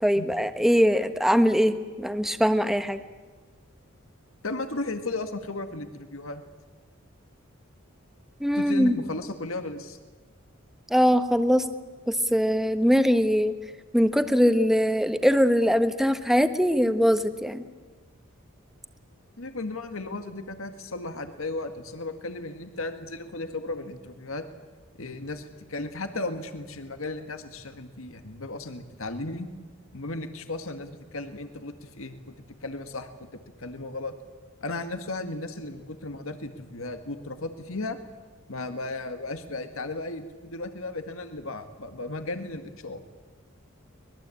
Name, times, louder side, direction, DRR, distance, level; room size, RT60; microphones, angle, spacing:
voice 1, 0.0-3.0 8.4-9.0 10.9-11.7 12.1-13.5 13.9-17.6, equal, ahead, 9 dB, 1.2 m, -22 dB
voice 2, 4.4-6.4 8.5-10.0 19.4-24.5 25.0-29.5 29.9-32.3 32.6-33.1 33.6-34.1 34.6-38.0 38.5-43.0, left 2 dB, 85° left, 8 dB, 1.9 m, -35 dB
24.5 x 21.5 x 8.6 m, 1.4 s
head